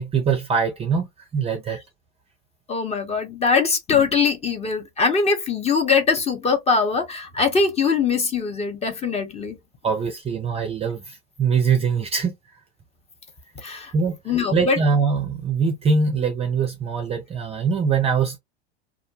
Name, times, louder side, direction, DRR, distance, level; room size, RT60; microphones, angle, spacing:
voice 1, 0.0-1.8 9.8-12.4 13.9-18.4, right 5 dB, 20° right, 0.5 m, -23 dB
voice 2, 2.7-9.6 13.6-13.9 14.3-14.8, left 5 dB, 20° left, 0.8 m, -22 dB
2.3 x 2.1 x 2.7 m
hypercardioid pair, 95°, 32 cm